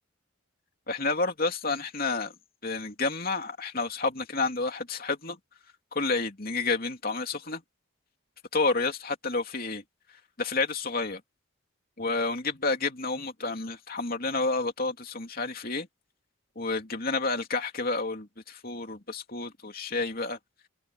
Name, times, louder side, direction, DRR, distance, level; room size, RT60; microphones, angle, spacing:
voice 1, 0.9-2.3 2.6-5.4 5.9-7.6 8.5-9.8 10.4-11.2 12.0-15.9 16.6-20.4, left 3 dB, 45° left, 3.0 m, -30 dB
head